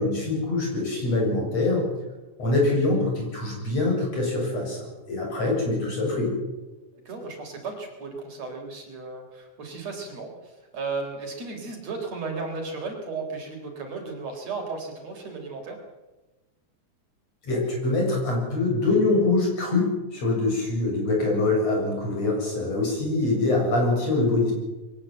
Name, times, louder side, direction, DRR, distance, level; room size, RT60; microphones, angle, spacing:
voice 1, 0.0-1.9 2.4-6.4 17.4-24.5, left 2 dB, 55° left, 0 dB, 8.5 m, -24 dB
voice 2, 7.0-15.8, right 4 dB, 60° right, 3 dB, 5.0 m, -35 dB
22.5 x 18.5 x 8.0 m, 1.1 s
omnidirectional pair, 3.5 m